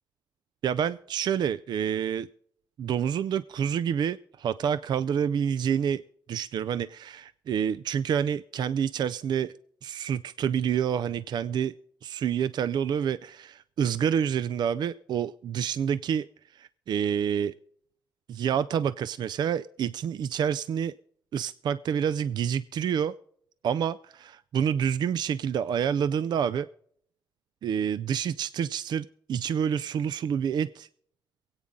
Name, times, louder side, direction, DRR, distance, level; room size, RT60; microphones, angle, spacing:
voice 1, 0.6-2.3 2.8-6.0 6.3-9.5 9.8-11.7 12.0-16.3 16.5-17.5 18.3-20.9 21.3-23.1 23.6-26.7 27.6-30.9, right 8 dB, 65° right, 16 dB, 0.4 m, -28 dB
23.5 x 8.9 x 3.7 m, 0.65 s
cardioid pair, 90°, 8 cm